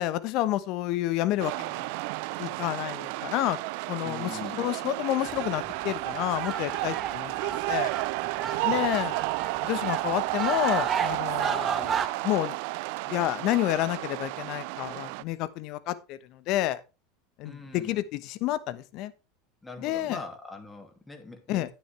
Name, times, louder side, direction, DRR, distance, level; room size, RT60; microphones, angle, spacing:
voice 1, 0.0-1.9 2.4-3.6 3.9-7.9 8.6-9.2 9.6-12.0 12.2-12.5 13.1-16.8 17.4-19.1 19.8-20.2 21.5-21.7, left 14 dB, 55° left, 15 dB, 1.0 m, -29 dB
sound 1, 1.4-15.2, right 21 dB, 65° right, 0.4 m, -32 dB
voice 2, 4.0-4.6 8.6-8.9 17.4-18.0 19.6-21.7, left 3 dB, 10° left, 4 dB, 2.7 m, -43 dB
sound 2, 5.3-12.1, right 6 dB, 30° right, 1.1 m, -34 dB
9.7 x 9.5 x 3.4 m, 0.28 s
hypercardioid pair, 90°, 0 cm